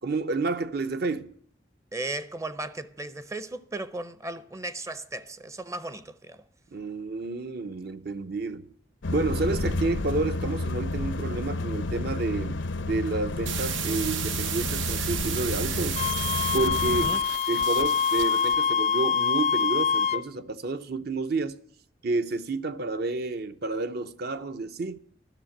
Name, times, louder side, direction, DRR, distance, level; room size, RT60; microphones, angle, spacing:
voice 1, 0.0-1.3 6.7-8.7 9.1-16.0 16.5-17.1 17.5-21.6 22.0-25.0, right 3 dB, 55° right, 0.7 m, -30 dB
voice 2, 1.9-6.4 16.9-17.2, right 2 dB, 15° right, 0.6 m, -36 dB
sound 1, 9.0-17.1, left 2 dB, 80° left, 0.7 m, -31 dB
sound 2, 13.4-18.6, right 9 dB, 90° right, 0.8 m, -33 dB
Wind instrument woodwind instrument, 15.9-20.2, left 6 dB, 35° left, 0.4 m, -25 dB
12.0 x 6.6 x 8.7 m
head